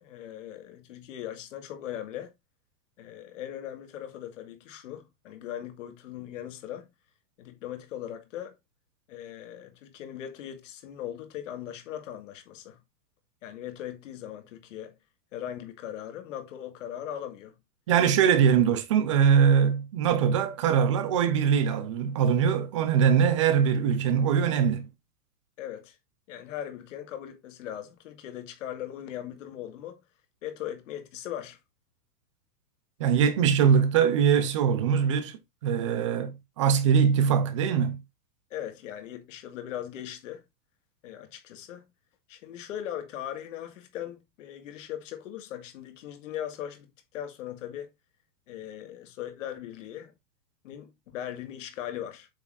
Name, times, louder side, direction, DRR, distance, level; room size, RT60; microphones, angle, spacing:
voice 1, 0.0-2.3 3.0-6.9 7.4-8.5 9.1-12.8 13.4-14.9 15.3-17.6 25.6-26.0 26.3-30.0 30.4-31.6 38.5-40.4 41.0-41.8 42.3-46.9 47.1-47.9 48.5-50.1 50.6-52.3, left 11 dB, 50° left, 1.8 m, -39 dB
voice 2, 17.9-24.9 33.0-38.0, right 7 dB, 20° right, 0.6 m, -22 dB
8.4 x 5.5 x 2.5 m
supercardioid pair, 170°, 48 cm